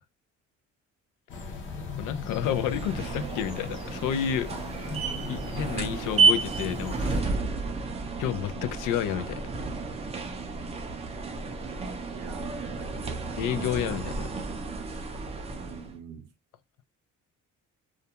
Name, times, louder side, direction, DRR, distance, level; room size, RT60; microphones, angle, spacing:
sound 1, 1.3-7.2, left 4 dB, 40° left, 0.6 m, -39 dB
voice 1, 2.0-4.5 4.8-4.9 5.3-7.3 8.2-9.4 13.4-14.3, left 10 dB, 85° left, 0.5 m, -30 dB
sound 2, 2.4-15.9, right 4 dB, 20° right, 0.3 m, -31 dB
voice 2, 12.1-13.2 15.5-16.3, right 7 dB, 55° right, 0.6 m, -44 dB
2.4 x 2.2 x 2.7 m
cardioid pair, 180°, 31 cm